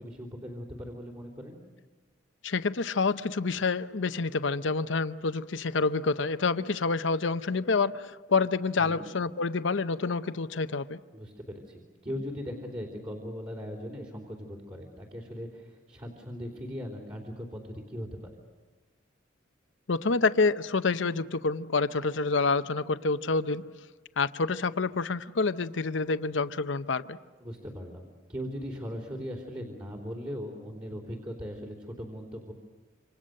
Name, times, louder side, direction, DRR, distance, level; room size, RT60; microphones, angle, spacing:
voice 1, 0.0-1.6 8.8-9.1 11.1-18.3 22.0-22.1 27.4-32.5, equal, 25° right, 3.5 m, -39 dB
voice 2, 2.4-11.0 19.9-23.7 24.2-27.2, left 4 dB, 70° left, 0.7 m, -28 dB
27.5 x 26.5 x 6.6 m
head